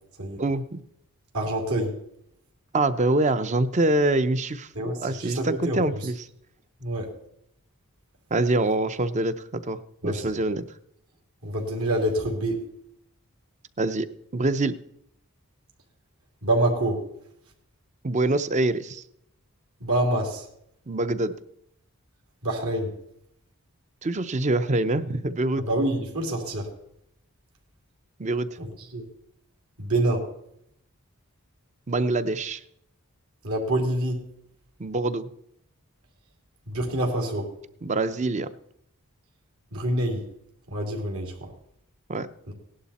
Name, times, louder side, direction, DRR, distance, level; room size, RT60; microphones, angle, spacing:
voice 1, 0.4-0.8 2.7-6.3 8.3-10.6 13.8-14.8 18.0-19.0 20.9-21.3 24.0-25.6 28.2-28.5 31.9-32.6 34.8-35.3 37.8-38.5 42.1-42.3, right 2 dB, 30° right, 13 dB, 0.6 m, -25 dB
voice 2, 1.3-2.0 4.7-5.8 6.8-7.1 10.0-10.3 11.4-12.6 16.4-17.0 19.8-20.4 22.4-22.9 25.7-26.7 28.6-28.7 28.9-29.0 29.8-30.3 33.4-34.2 36.7-37.5 39.7-40.2 40.7-41.5 42.5-42.6, right 1 dB, 70° right, 1 dB, 2.9 m, -26 dB
17.5 x 11.5 x 4.2 m, 0.75 s
head